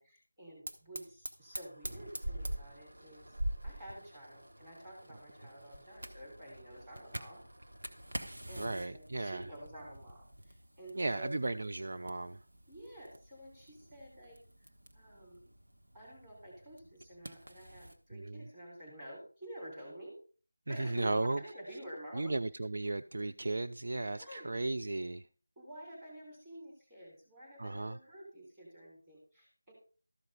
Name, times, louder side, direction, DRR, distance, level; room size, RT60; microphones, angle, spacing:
voice 1, 0.0-7.4 8.5-11.3 12.7-14.7 14.9-15.5 15.9-20.1 20.7-22.3 24.1-24.7 25.5-29.7, right 1 dB, 10° right, 3.3 m, -50 dB
Fire, 0.7-18.0, right 1 dB, 75° right, 1.3 m, -46 dB
voice 2, 8.6-9.4 11.0-12.4 18.1-18.4 20.7-21.4 22.1-25.2 27.6-28.0, right 2 dB, 50° right, 0.3 m, -35 dB
13.5 x 5.1 x 4.9 m
figure-of-eight pair, 175°, 0 cm